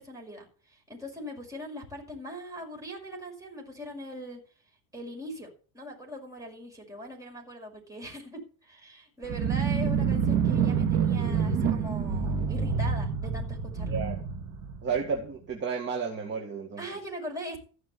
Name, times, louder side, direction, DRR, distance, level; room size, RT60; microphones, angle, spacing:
voice 1, 0.0-4.4 4.9-5.5 5.7-14.0 16.8-17.6, equal, 10° right, 0 dB, 5.8 m, -41 dB
sound 1, 9.2-15.2, right 6 dB, 55° right, 3.1 m, -27 dB
voice 2, 13.9-14.2 14.8-16.9, right 5 dB, 30° right, 1 dB, 2.2 m, -32 dB
15.5 x 6.1 x 8.4 m, 0.39 s
cardioid pair, 150°, 37 cm